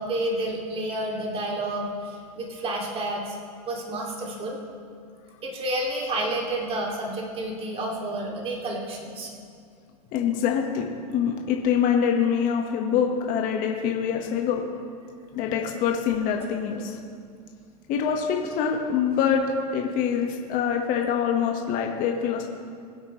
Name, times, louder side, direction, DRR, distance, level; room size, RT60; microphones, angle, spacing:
voice 1, 0.0-3.3 3.7-4.6 5.4-9.3, right 1 dB, 30° right, -2 dB, 2.7 m, -30 dB
voice 2, 10.1-14.6 15.3-17.0 17.9-22.4, left 7 dB, 45° left, 2 dB, 1.5 m, -25 dB
22.5 x 8.2 x 3.2 m, 2.2 s
hypercardioid pair, 105°, 20 cm